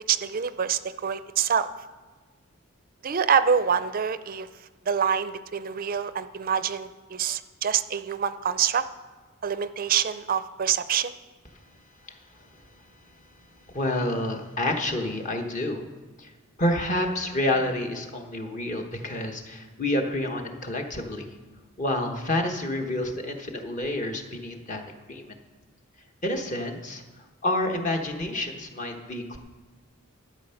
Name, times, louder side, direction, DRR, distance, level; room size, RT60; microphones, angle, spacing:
voice 1, 0.1-1.7 3.0-4.5 4.9-8.8 9.4-11.1, right 7 dB, 45° right, 13 dB, 0.5 m, -26 dB
voice 2, 13.7-15.8 16.2-16.3 16.6-21.3 21.8-24.8 25.1-25.4 26.2-27.0 27.4-29.4, left 1 dB, 35° left, 4 dB, 1.1 m, -28 dB
12.5 x 8.4 x 5.7 m, 1.4 s
head